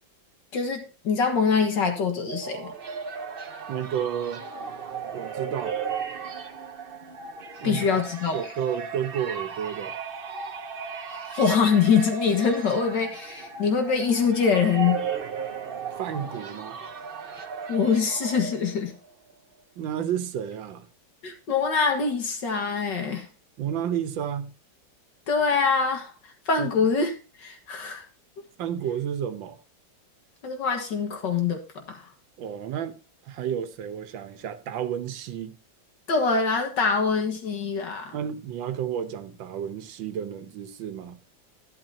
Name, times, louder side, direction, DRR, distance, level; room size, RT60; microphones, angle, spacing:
voice 1, 0.5-2.7 7.6-8.4 11.3-15.0 17.7-18.9 21.2-23.3 25.3-26.1 26.5-27.1 27.4-28.0 30.4-31.6 31.9-32.0 36.1-38.1, left 5 dB, 70° left, 2.1 m, -24 dB
sound 1, 2.0-19.0, right 6 dB, 40° right, 0.8 m, -36 dB
voice 2, 3.7-4.5 5.1-5.8 7.6-7.9 8.3-9.9 16.0-16.8 19.8-20.9 23.6-24.5 26.6-26.9 28.6-29.6 32.4-33.0 33.3-35.6 38.1-41.2, right 9 dB, 90° right, 1.6 m, -31 dB
12.0 x 11.0 x 2.7 m
omnidirectional pair, 2.0 m